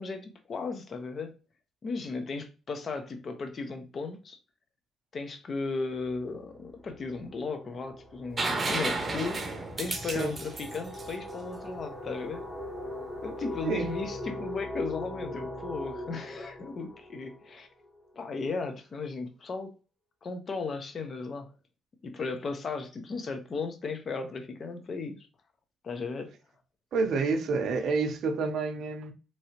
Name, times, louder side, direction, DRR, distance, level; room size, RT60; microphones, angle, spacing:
voice 1, 0.0-1.3 1.8-4.4 5.1-9.4 9.8-12.4 13.2-17.7 18.1-19.7 20.2-21.5 22.0-25.3 25.8-26.3, left 4 dB, 45° left, 0.7 m, -36 dB
sound 1, 6.2-6.3 6.6-18.1, left 1 dB, 15° left, 0.9 m, -40 dB
sound 2, 8.4-12.1 13.9-14.0, right 3 dB, 30° right, 0.7 m, -33 dB
voice 2, 26.9-29.1, right 4 dB, 70° right, 0.6 m, -28 dB
3.1 x 2.8 x 2.8 m
cardioid pair, 90°, 0 cm